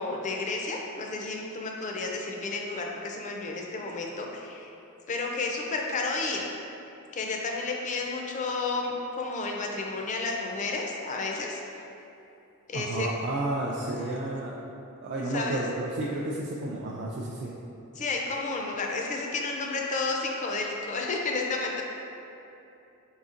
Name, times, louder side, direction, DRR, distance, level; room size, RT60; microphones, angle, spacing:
voice 1, 0.0-4.7 5.1-6.5 7.1-11.6 12.7-13.1 15.3-15.6 18.0-21.8, left 3 dB, 35° left, 0 dB, 0.4 m, -31 dB
voice 2, 12.7-14.6 15.0-17.5, right 2 dB, 55° right, -4 dB, 0.4 m, -31 dB
4.2 x 3.9 x 2.4 m, 2.9 s
head